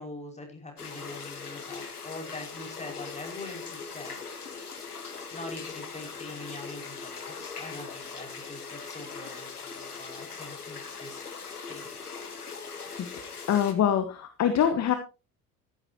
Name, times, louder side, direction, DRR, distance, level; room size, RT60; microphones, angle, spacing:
voice 1, 0.0-4.2 5.3-11.2 11.7-11.9, left 2 dB, 15° left, 2 dB, 5.7 m, -43 dB
sound 1, 0.8-13.7, left 5 dB, 85° left, 1.5 m, -40 dB
voice 2, 13.5-14.9, left 9 dB, 35° left, 9 dB, 1.5 m, -24 dB
14.5 x 12.0 x 2.9 m, 0.30 s
figure-of-eight pair, 60°, 44 cm